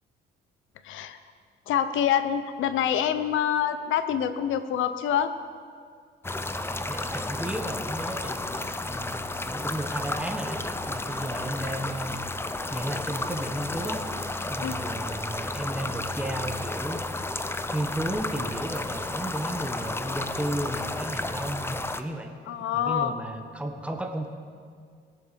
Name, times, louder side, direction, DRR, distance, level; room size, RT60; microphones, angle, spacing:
voice 1, 0.8-1.2 1.7-5.4 14.6-14.8 22.5-23.1, left 9 dB, 80° left, 11 dB, 0.8 m, -26 dB
sound 1, 6.2-22.0, left 2 dB, 10° left, 0.6 m, -32 dB
voice 2, 6.9-8.6 8.9-10.6 10.9-12.2 12.7-14.1 14.5-17.3 17.7-22.3 22.7-24.3, right 1 dB, 5° right, 3 dB, 1.1 m, -33 dB
19.0 x 7.1 x 5.1 m, 2.1 s
cardioid pair, 90°, 20 cm